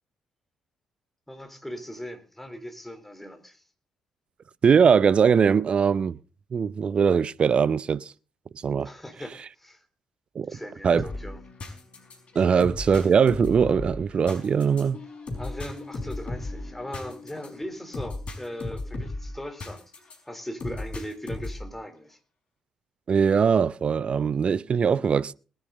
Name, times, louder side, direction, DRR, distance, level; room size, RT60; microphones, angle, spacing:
voice 1, 1.3-3.6 8.8-9.8 10.5-11.4 15.3-19.9 20.3-22.2, equal, 5° left, 3.5 m, -39 dB
voice 2, 4.6-6.2 6.5-8.1 8.6-8.9 10.4-11.1 12.3-15.0 23.1-25.3, right 6 dB, 40° right, 0.6 m, -21 dB
sound 1, 10.9-20.2 20.6-21.7, left 2 dB, 40° left, 5.2 m, -36 dB
20.0 x 10.5 x 3.8 m
figure-of-eight pair, 45°, 3 cm